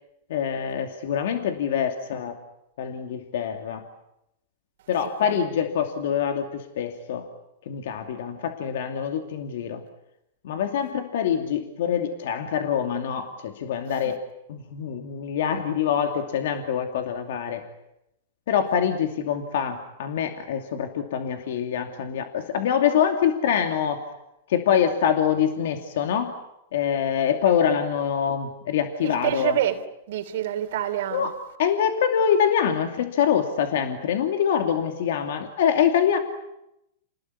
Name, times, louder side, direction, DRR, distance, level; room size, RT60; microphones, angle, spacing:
voice 1, 0.3-2.4 2.8-3.8 4.9-7.3 7.7-9.8 10.4-14.2 14.5-17.6 18.5-24.1 24.5-26.4 26.7-29.6 31.1-36.2, left 8 dB, 70° left, 5 dB, 2.6 m, -25 dB
voice 2, 29.0-29.8 30.1-31.3, right 11 dB, 70° right, 5 dB, 3.4 m, -26 dB
29.0 x 20.0 x 9.7 m, 0.86 s
hypercardioid pair, 130°, 0 cm